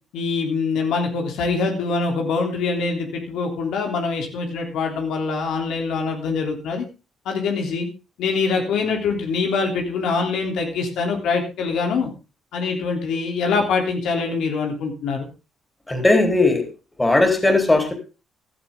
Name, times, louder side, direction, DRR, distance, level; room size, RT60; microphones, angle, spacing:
voice 1, 0.1-6.9 7.3-7.9 8.2-12.1 12.5-15.3, left 4 dB, 85° left, 2 dB, 3.3 m, -24 dB
voice 2, 15.9-16.7 17.0-17.9, left 2 dB, 15° left, 5 dB, 3.9 m, -17 dB
15.5 x 12.0 x 3.8 m, 0.31 s
cardioid pair, 90°, 0 cm